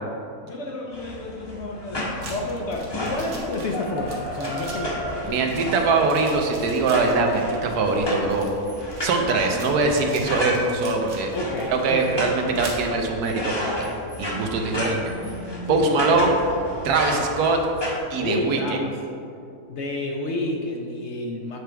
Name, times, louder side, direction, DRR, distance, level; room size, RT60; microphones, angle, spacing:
voice 1, 0.4-5.7 11.3-12.2 15.6-16.0 18.2-18.9 19.7-21.6, left 2 dB, 65° left, 1 dB, 0.7 m, -30 dB
sound 1, 0.9-18.0, left 1 dB, 20° left, 0.7 m, -32 dB
sound 2, 2.2-12.9, right 2 dB, 55° right, 1.2 m, -42 dB
voice 2, 5.3-8.5 9.0-11.3 11.7-13.5 14.2-15.1 15.7-16.4 16.8-17.6 18.1-18.6, right 3 dB, 90° right, 3 dB, 1.3 m, -22 dB
8.0 x 3.4 x 4.5 m, 2.5 s
omnidirectional pair, 1.6 m